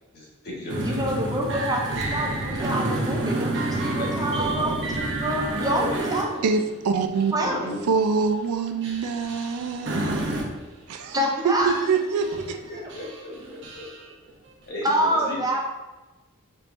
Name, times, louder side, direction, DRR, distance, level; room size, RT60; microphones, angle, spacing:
voice 1, 0.1-1.0 4.0-4.9 5.5-6.6 7.4-7.8 12.7-14.1 14.7-15.4, left 1 dB, 50° left, -4 dB, 1.3 m, -36 dB
sound 1, 0.7-6.7 7.1-7.3 7.7-7.9 8.8-10.6 11.1-11.2 11.6-11.9 12.2-12.6 12.9-14.0, right 1 dB, 55° right, 0.8 m, -29 dB
voice 2, 0.8-6.5 7.3-7.8 11.1-11.8 12.7-12.8 14.8-15.6, right 1 dB, 15° right, -1 dB, 0.5 m, -27 dB
voice 3, 6.4-7.3 7.9-10.6 10.9-11.2 11.4-12.3, right 5 dB, 80° right, 6 dB, 0.4 m, -25 dB
4.3 x 3.4 x 2.6 m, 1.1 s
head